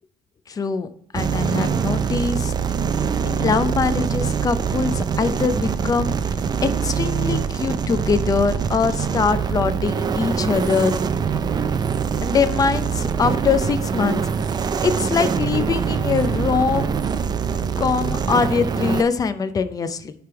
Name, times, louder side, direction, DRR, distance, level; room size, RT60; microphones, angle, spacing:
voice 1, 0.5-0.9 1.1-2.5 3.2-6.1 6.6-10.9 12.2-14.2 14.5-14.6 14.8-16.9 17.5-20.1, left 5 dB, 25° left, 10 dB, 0.5 m, -23 dB
sound 1, 1.1-19.0, right 6 dB, 30° right, 0.4 m, -23 dB
10.0 x 3.4 x 4.5 m, 0.70 s
cardioid pair, 140°, 14 cm